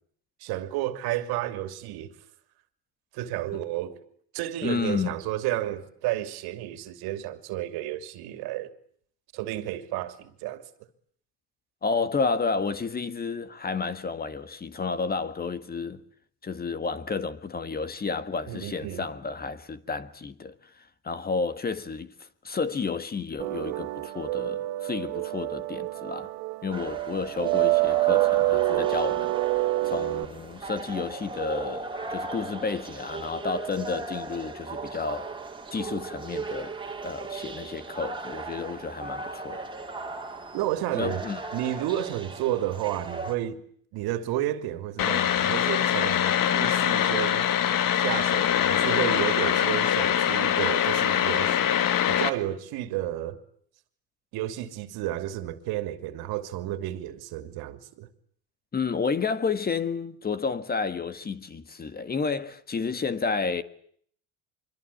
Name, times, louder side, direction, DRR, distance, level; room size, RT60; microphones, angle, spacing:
voice 1, 0.4-2.1 3.1-4.0 4.3-8.7 9.3-10.6 18.5-19.0 40.5-41.2 41.5-43.6 43.9-47.5 48.0-51.7 52.1-53.4 54.3-58.1, right 13 dB, 70° right, 2.9 m, -31 dB
voice 2, 4.6-5.2 11.8-16.0 16.4-20.5 21.0-26.3 26.6-29.3 29.8-35.3 35.7-36.8 37.0-39.6 40.9-41.4 58.7-63.6, left 4 dB, 25° left, 1.7 m, -31 dB
sound 1, 23.4-30.2, right 19 dB, 85° right, 1.9 m, -27 dB
sound 2, 26.7-43.4, right 3 dB, 10° right, 3.2 m, -37 dB
sound 3, 45.0-52.3, left 10 dB, 55° left, 2.1 m, -23 dB
25.5 x 23.0 x 8.6 m
cardioid pair, 115°, 39 cm